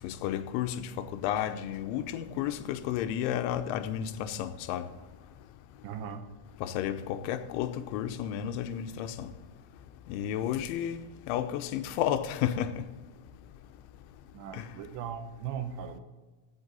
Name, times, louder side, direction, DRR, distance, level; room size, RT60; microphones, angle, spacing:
voice 1, 0.0-4.8 6.6-9.3 10.1-12.7, left 10 dB, 90° left, 3.1 m, -32 dB
voice 2, 5.8-6.3 14.3-16.0, right 8 dB, 80° right, 3.2 m, -38 dB
15.5 x 8.0 x 4.0 m
omnidirectional pair, 5.3 m